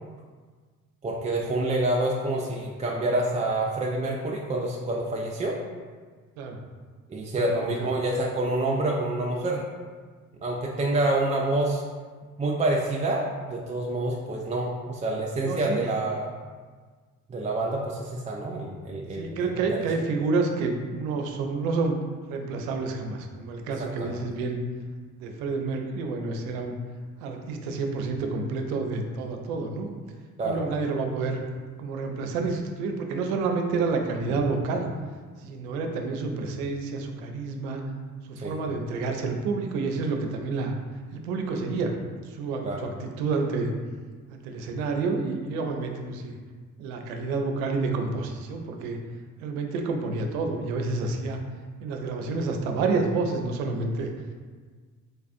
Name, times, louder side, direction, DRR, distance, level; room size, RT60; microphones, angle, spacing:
voice 1, 1.0-5.6 7.1-9.6 10.4-11.8 12.4-16.3 17.3-19.8 23.8-24.2 30.4-30.6 38.4-38.6 42.6-42.8, right 2 dB, 20° right, -2 dB, 0.3 m, -27 dB
voice 2, 7.4-7.9 15.4-15.9 19.1-22.0 22.3-24.6 25.2-26.8 27.2-29.9 30.4-31.4 31.8-34.9 35.4-37.8 38.4-40.7 41.1-41.9 42.2-43.7 44.3-46.3 46.8-49.0 49.4-51.4 51.8-54.1, right 4 dB, 75° right, 3 dB, 0.5 m, -29 dB
4.0 x 2.4 x 2.5 m, 1.5 s
hypercardioid pair, 50°, 42 cm